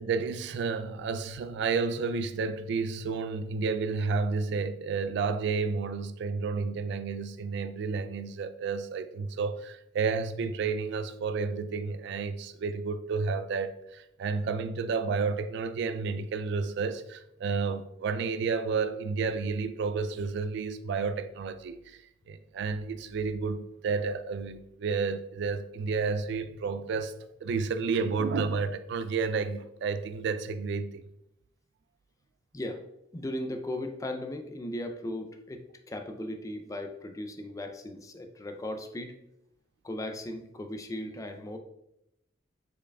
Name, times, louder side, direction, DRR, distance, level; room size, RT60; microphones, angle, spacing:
voice 1, 0.0-27.2 27.4-31.0, right 4 dB, 65° right, 0.3 m, -31 dB
voice 2, 33.1-39.2 39.8-41.6, left 1 dB, 20° left, 0.4 m, -37 dB
4.7 x 4.6 x 2.3 m
head